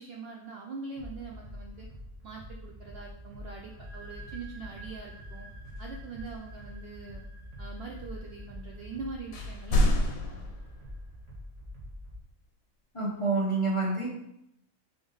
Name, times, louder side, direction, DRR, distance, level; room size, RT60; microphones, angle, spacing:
voice 1, 0.0-1.9 2.2-5.5 5.8-7.2 7.6-10.5, right 4 dB, 65° right, 0 dB, 0.6 m, -43 dB
sound 1, 1.0-12.2, left 1 dB, 35° right, 0.8 m, -45 dB
sound 2, 3.6-11.1, right 3 dB, 5° left, 1.4 m, -54 dB
sound 3, 5.6-6.8 7.7-8.5 8.8-8.9 9.2-11.1, left 1 dB, 80° left, 1.1 m, -29 dB
voice 2, 12.9-14.1, right 3 dB, 30° left, -5 dB, 0.7 m, -28 dB
3.9 x 3.5 x 3.8 m, 0.80 s
omnidirectional pair, 1.5 m